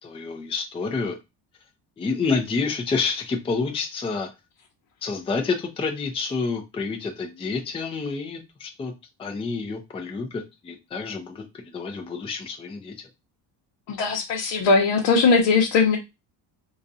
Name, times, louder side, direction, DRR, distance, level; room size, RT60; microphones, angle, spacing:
voice 1, 0.0-1.2 2.0-4.3 5.0-8.9 9.2-13.1, left 4 dB, 15° left, 3 dB, 0.4 m, -28 dB
voice 2, 13.9-16.0, left 4 dB, 70° left, -1 dB, 0.8 m, -19 dB
3.9 x 2.4 x 2.6 m, 0.24 s
cardioid pair, 145°, 43 cm